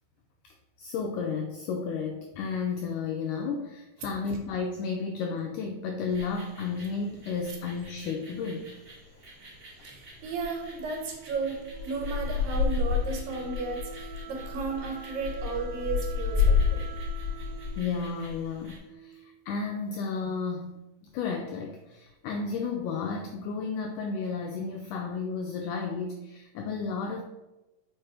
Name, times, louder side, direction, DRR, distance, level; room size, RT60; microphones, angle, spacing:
voice 1, 0.8-8.7 17.8-20.7 21.1-27.2, left 5 dB, 85° left, 3 dB, 1.8 m, -32 dB
sound 1, 6.1-18.8, left 5 dB, 25° right, 2.3 m, -32 dB
voice 2, 9.8-16.9, right 4 dB, 70° right, 2 dB, 2.8 m, -34 dB
Wind instrument woodwind instrument, 10.7-19.5, right 6 dB, 85° right, 2.6 m, -47 dB
6.7 x 5.1 x 4.4 m, 1.0 s
omnidirectional pair, 4.3 m